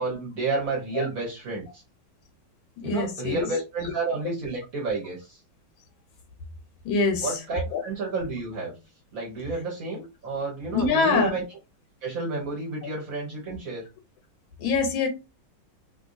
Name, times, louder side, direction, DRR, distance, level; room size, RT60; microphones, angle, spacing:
voice 1, 0.0-1.8 2.8-5.4 7.2-8.7 9.1-11.4 12.0-13.8, right 3 dB, 50° right, 1.3 m, -30 dB
voice 2, 2.8-3.5 3.8-3.9 6.8-7.3 7.7-7.8 10.7-11.3 14.6-15.1, left 4 dB, 75° left, 1.5 m, -24 dB
3.4 x 2.6 x 2.6 m
omnidirectional pair, 2.3 m